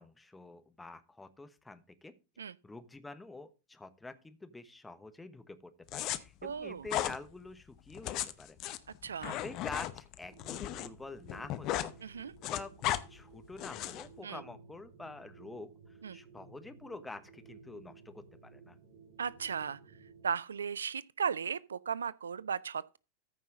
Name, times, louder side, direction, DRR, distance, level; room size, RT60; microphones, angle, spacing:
voice 1, 0.0-2.2 2.6-8.6 9.2-11.9 12.2-15.7 16.1-18.8, left 2 dB, 10° left, 1.1 m, -47 dB
sound 1, 5.9-6.2 6.9-7.2 7.9-10.9 11.2-11.9 12.2-13.0 13.6-14.1, left 14 dB, 40° left, 0.8 m, -35 dB
voice 2, 6.4-6.9 9.0-9.3 12.0-12.3 14.2-14.4 16.0-16.2 19.2-19.8 20.2-23.0, right 7 dB, 70° right, 0.4 m, -36 dB
sound 2, 10.1-20.4, right 4 dB, 40° right, 4.7 m, -56 dB
14.0 x 5.5 x 3.8 m
figure-of-eight pair, 90°, 0 cm